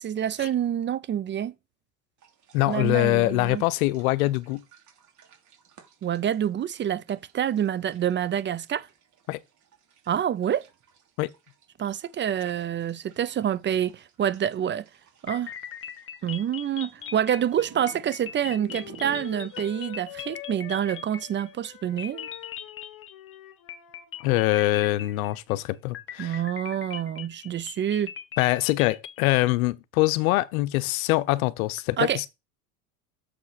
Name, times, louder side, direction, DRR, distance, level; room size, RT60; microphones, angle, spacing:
voice 1, 0.0-1.5 2.7-3.6 6.0-8.9 10.1-10.6 11.8-14.8 15.2-15.5 16.2-22.3 26.2-28.1 32.0-32.3, right 9 dB, 25° right, 0.5 m, -27 dB
sound 1, 2.2-19.6, right 8 dB, 40° right, 3.0 m, -54 dB
voice 2, 2.5-4.6 9.3-9.4 11.2-11.3 24.2-26.4 28.4-32.3, left 18 dB, 75° left, 0.8 m, -24 dB
sound 2, 15.3-21.7 22.0-23.4 23.7-25.5 25.9-29.3, left 9 dB, 30° left, 1.1 m, -40 dB
Wind instrument woodwind instrument, 17.0-25.1, left 16 dB, 50° left, 1.6 m, -46 dB
6.8 x 4.9 x 5.8 m
hypercardioid pair, 95°, 43 cm